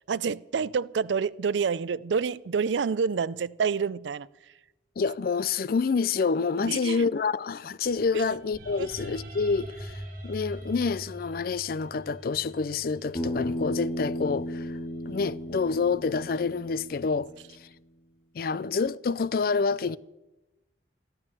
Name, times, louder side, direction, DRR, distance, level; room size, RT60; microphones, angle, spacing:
voice 1, 0.1-4.3 6.6-7.0 8.1-8.2, right 6 dB, 90° right, 0.4 m, -28 dB
voice 2, 5.0-14.8 15.1-17.3 17.6-17.7 18.3-20.0, left 5 dB, 55° left, 0.4 m, -28 dB
sound 1, 7.8-16.0, right 1 dB, 50° right, 3.3 m, -44 dB
Bass guitar, 13.1-17.5, left 1 dB, 30° left, 2.7 m, -35 dB
14.0 x 12.0 x 6.6 m
head